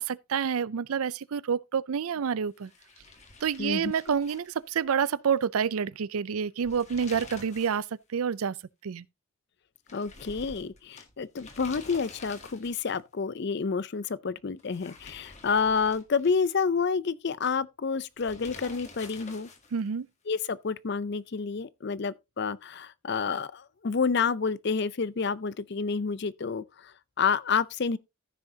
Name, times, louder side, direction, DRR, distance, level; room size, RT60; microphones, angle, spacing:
voice 1, 0.0-2.7 3.4-7.9 8.1-8.6 8.8-9.0 19.7-20.1, right 7 dB, 85° right, 0.4 m, -28 dB
sound 1, 2.6-5.1 5.4-5.5 6.5-7.9 8.2-8.3 9.9-13.0 14.6-16.6 18.2-19.9, left 3 dB, 30° left, 1.8 m, -48 dB
voice 2, 3.6-3.9 9.9-19.5 20.3-28.0, left 5 dB, 50° left, 0.5 m, -29 dB
14.5 x 6.2 x 2.8 m
head